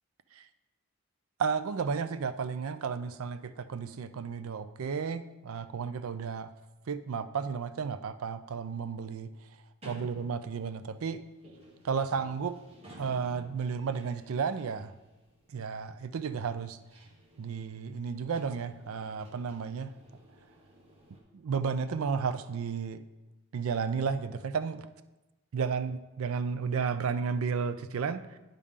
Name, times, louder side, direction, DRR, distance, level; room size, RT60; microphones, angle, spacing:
voice 1, 1.4-6.5 6.9-9.3 9.9-11.2 11.8-12.6 13.0-14.9 15.5-16.8 17.4-20.0 21.3-23.0 23.5-24.9 25.5-28.4, right 6 dB, 75° right, 12 dB, 0.4 m, -33 dB
sound 1, 9.8-21.2, right 1 dB, 25° right, 1.3 m, -55 dB
10.0 x 5.3 x 3.7 m, 1.1 s
head